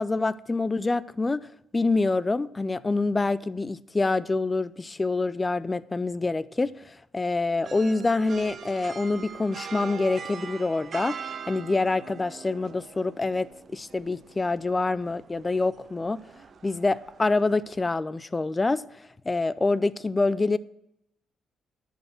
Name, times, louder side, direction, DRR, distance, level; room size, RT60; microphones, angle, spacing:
voice 1, 0.0-1.5 1.7-16.2 16.6-18.8 19.3-20.6, left 3 dB, 20° left, 0.5 m, -26 dB
sound 1, 7.6-17.9, right 7 dB, 50° right, 0.7 m, -42 dB
10.5 x 5.6 x 7.6 m
cardioid pair, 90°, 0 cm